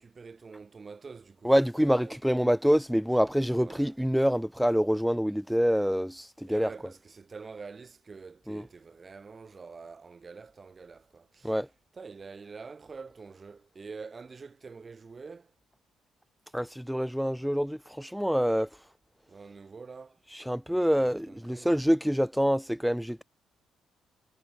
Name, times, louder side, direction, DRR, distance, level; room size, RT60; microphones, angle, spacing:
voice 1, 0.0-2.2 3.5-4.0 6.4-11.6 11.9-15.5 19.3-20.2 20.7-21.8, right 4 dB, 35° right, 5.9 m, -46 dB
voice 2, 1.4-6.7 8.5-8.6 11.4-11.7 16.5-18.7 20.5-23.2, equal, ahead, 0.5 m, -26 dB
cardioid pair, 90°, 0 cm